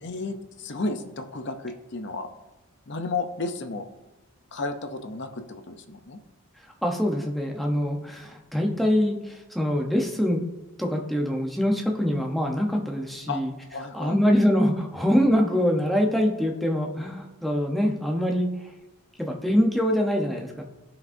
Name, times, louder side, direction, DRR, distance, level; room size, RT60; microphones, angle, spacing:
voice 1, 0.0-2.3 2.9-3.9 4.5-6.2 13.3-13.4 13.7-14.2, left 3 dB, 50° left, 8 dB, 0.7 m, -32 dB
voice 2, 6.8-10.4 10.8-13.5 13.9-18.5 19.2-20.6, equal, ahead, 0 dB, 0.8 m, -24 dB
14.5 x 5.0 x 2.7 m, 1.1 s
head